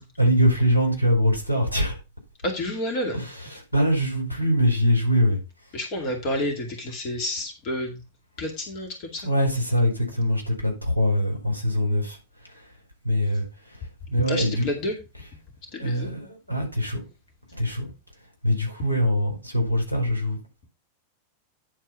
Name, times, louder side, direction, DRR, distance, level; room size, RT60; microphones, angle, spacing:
voice 1, 0.0-2.0 3.1-5.4 9.2-12.7 13.0-14.7 15.7-17.0 17.5-17.9 18.4-20.4, equal, 85° left, 4.5 m, -23 dB
voice 2, 2.4-3.1 5.7-8.0 8.4-9.3 14.3-14.9 15.7-16.1, left 1 dB, 40° left, 2.3 m, -29 dB
10.0 x 4.7 x 5.7 m
figure-of-eight pair, 90°, 0 cm